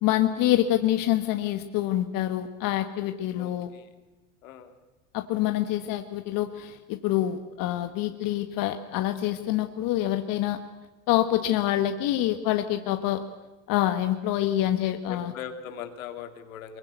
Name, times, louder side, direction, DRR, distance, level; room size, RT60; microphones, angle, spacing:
voice 1, 0.0-3.7 5.1-10.6 11.1-13.2 13.7-15.3, left 13 dB, 55° left, 8 dB, 1.5 m, -26 dB
voice 2, 3.3-3.9 4.4-4.7 8.1-8.3 15.1-16.8, left 8 dB, 80° left, 7 dB, 2.6 m, -40 dB
23.0 x 23.0 x 8.2 m, 1.1 s
hypercardioid pair, 80°, 40 cm